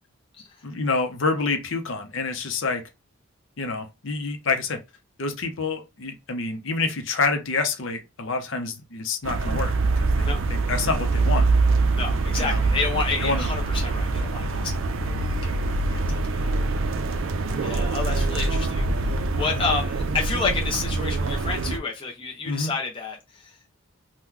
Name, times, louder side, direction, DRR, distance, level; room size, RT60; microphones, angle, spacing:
voice 1, 0.6-2.8 3.6-4.8 5.2-11.5 12.4-12.6 13.2-13.5 22.5-22.7, left 4 dB, 60° left, 0.7 m, -27 dB
sound 1, 9.2-21.8, right 3 dB, 65° right, 0.4 m, -24 dB
voice 2, 12.0-16.5 17.6-23.5, left 4 dB, 25° left, 0.6 m, -30 dB
3.0 x 2.2 x 3.7 m
head